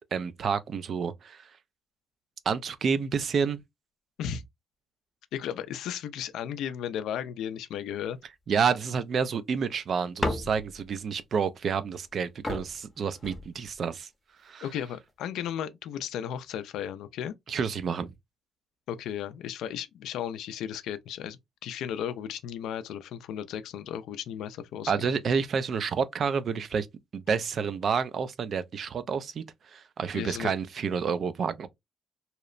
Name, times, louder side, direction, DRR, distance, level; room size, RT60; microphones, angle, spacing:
voice 1, 0.1-1.5 2.5-3.6 8.5-14.1 14.4-14.7 17.5-18.1 24.9-26.9 27.1-31.7, right 6 dB, 55° right, 0.3 m, -29 dB
voice 2, 5.3-8.2 14.6-17.3 18.9-25.1 30.1-30.5, left 9 dB, 85° left, 0.3 m, -35 dB
sound 1, 10.2-10.9 12.1-12.2 12.4-13.9 14.7-15.1, left 1 dB, 15° left, 0.6 m, -34 dB
2.8 x 2.0 x 2.3 m
cardioid pair, 90°, 0 cm